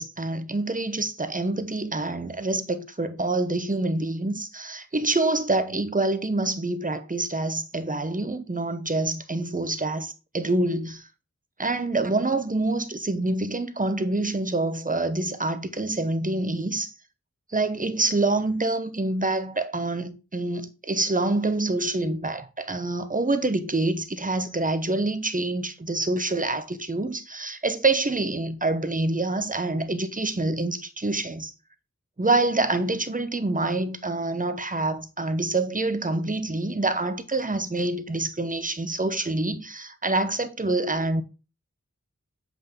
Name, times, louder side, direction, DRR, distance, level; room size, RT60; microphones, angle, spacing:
voice 1, 0.0-11.1 11.6-16.9 17.5-31.5 32.2-41.2, right 2 dB, 25° right, 0.8 m, -26 dB
7.5 x 5.5 x 3.7 m
wide cardioid pair, 45°, 31 cm